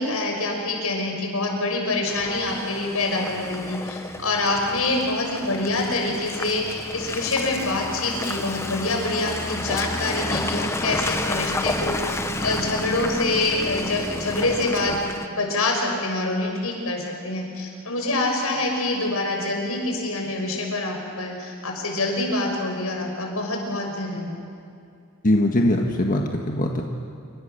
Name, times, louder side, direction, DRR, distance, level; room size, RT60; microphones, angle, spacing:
voice 1, 0.0-15.0 15.2-24.4, left 2 dB, 85° left, 1 dB, 6.0 m, -26 dB
Car passing by / Engine, 2.1-15.3, left 2 dB, 10° left, 1.0 m, -31 dB
voice 2, 25.2-26.8, left 1 dB, 40° left, 2 dB, 1.6 m, -21 dB
28.0 x 25.0 x 6.8 m, 2.4 s
head